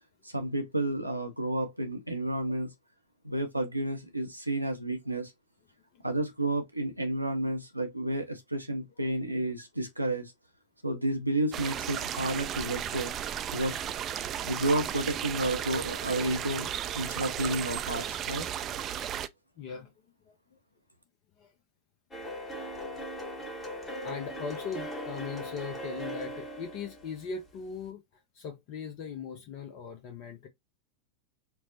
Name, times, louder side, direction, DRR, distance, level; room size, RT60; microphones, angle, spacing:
voice 1, 0.2-2.7 3.2-5.3 6.0-10.3 10.8-13.1 13.5-13.8 14.5-16.7 16.9-18.5, right 1 dB, 90° right, 0.6 m, -31 dB
sound 1, 11.5-19.3, right 10 dB, 30° right, 0.3 m, -35 dB
voice 2, 19.6-19.9 20.3-20.4 21.4-21.5 22.7-22.8 23.2-23.6 24.0-30.5, left 6 dB, 45° left, 0.6 m, -40 dB
sound 2, 22.1-27.9, equal, 15° left, 1.0 m, -39 dB
4.4 x 2.0 x 2.6 m
figure-of-eight pair, 90°, 0 cm